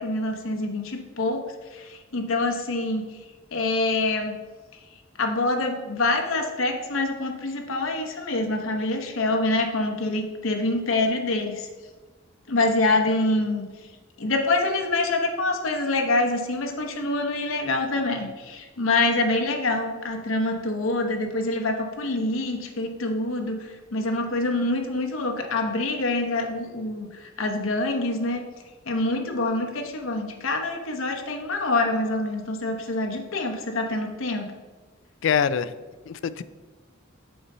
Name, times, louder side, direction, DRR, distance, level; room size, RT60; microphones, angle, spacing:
voice 1, 0.0-1.4 1.7-3.0 3.5-4.4 5.2-11.7 12.5-13.7 14.2-28.4 28.9-34.5, left 2 dB, 90° left, 4 dB, 0.9 m, -26 dB
voice 2, 35.2-35.7 36.1-36.4, left 7 dB, 65° left, 15 dB, 0.3 m, -24 dB
7.0 x 4.0 x 5.3 m, 1.3 s
head